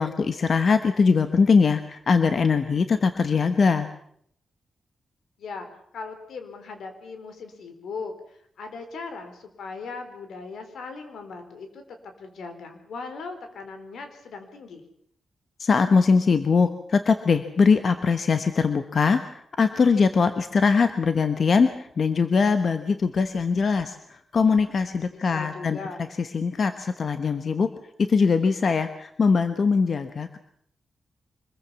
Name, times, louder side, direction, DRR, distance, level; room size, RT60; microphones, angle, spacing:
voice 1, 0.0-3.9 15.6-19.2 19.6-25.8 26.2-27.7 28.0-30.4, left 5 dB, 45° left, 9 dB, 1.2 m, -21 dB
voice 2, 5.9-14.8 25.1-26.1, left 4 dB, 80° left, 7 dB, 4.4 m, -39 dB
25.5 x 21.5 x 7.1 m, 0.69 s
wide cardioid pair, 170°, 0 cm